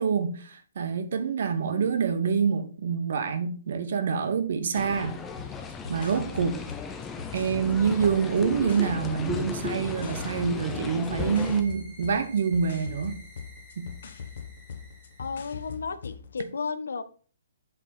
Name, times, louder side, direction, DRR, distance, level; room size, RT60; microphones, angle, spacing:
voice 1, 0.0-5.2 5.9-6.6 7.3-13.2 13.8-13.9, right 6 dB, 65° right, 1.0 m, -26 dB
sound 1, 4.7-11.6, left 5 dB, 15° left, 0.7 m, -36 dB
sound 2, 5.4-16.5, left 6 dB, 65° left, 1.0 m, -42 dB
sound 3, 10.9-15.8, right 1 dB, 20° right, 1.5 m, -52 dB
voice 2, 15.2-17.0, left 5 dB, 80° left, 0.7 m, -33 dB
8.0 x 3.5 x 4.3 m
hypercardioid pair, 150°, 0 cm